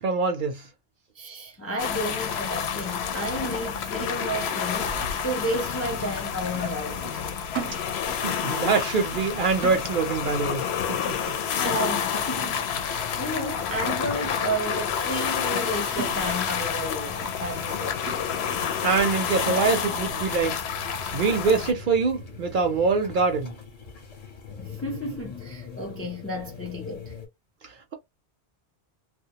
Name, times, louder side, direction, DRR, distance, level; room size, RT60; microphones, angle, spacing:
voice 1, 0.0-0.7 8.1-11.2 11.5-11.6 18.8-20.6 21.1-23.5 27.6-27.9, right 4 dB, 60° right, 0.6 m, -24 dB
voice 2, 1.2-7.2 11.5-18.1 21.0-21.1 24.6-27.1, right 1 dB, 20° left, 0.3 m, -32 dB
sound 1, 1.8-21.7, left 7 dB, 75° left, 0.8 m, -29 dB
sound 2, 3.4-4.7 5.0-5.2 5.5-6.2 6.5-6.8 7.0-8.3 8.6-8.8 9.1-10.3 10.6-10.9 11.2-11.4 11.7-12.3 12.8-12.9 13.3-13.5 13.9-14.5 14.9-15.1 15.5-15.7 16.0-16.7 17.0-17.1 17.5-17.7 18.1-18.6 19.1-19.2 19.6-19.8, right 8 dB, 85° right, 0.9 m, -40 dB
sound 3, 12.1-27.3, left 4 dB, 40° left, 0.8 m, -42 dB
2.2 x 2.1 x 2.8 m
omnidirectional pair, 1.1 m